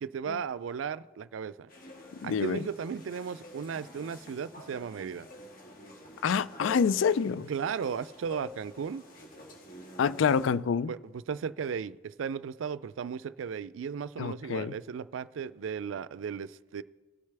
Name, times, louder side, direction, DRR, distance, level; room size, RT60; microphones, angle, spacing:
voice 1, 0.0-1.7 2.2-5.3 7.5-9.0 10.9-16.8, right 6 dB, 90° right, 0.4 m, -35 dB
sound 1, 1.7-10.5, left 2 dB, 50° left, 1.7 m, -49 dB
voice 2, 2.1-2.6 6.2-7.5 10.0-10.9 14.2-14.7, left 6 dB, 85° left, 0.4 m, -27 dB
19.0 x 6.5 x 3.4 m
head